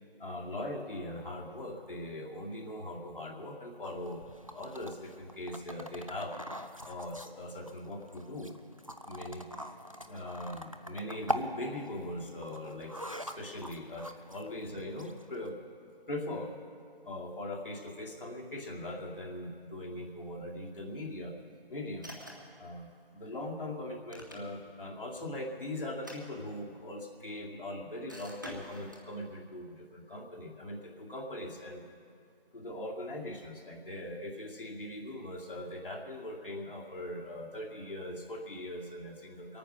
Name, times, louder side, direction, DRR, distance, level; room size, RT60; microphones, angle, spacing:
voice 1, 0.2-4.2 4.5-6.3 6.8-8.5 9.1-9.4 10.1-15.6 16.1-16.5 17.0-21.3 21.7-22.1 22.6-22.9 23.1-31.8 32.5-39.6, left 1 dB, 60° left, -2 dB, 2.3 m, -40 dB
sound 1, 3.8-15.5, equal, 35° right, 0.4 m, -43 dB
sound 2, 22.0-22.6 23.9-24.8 25.9-26.9 28.1-29.1, equal, 20° right, 0.9 m, -48 dB
21.5 x 9.2 x 5.9 m, 2.4 s
figure-of-eight pair, 175°, 30 cm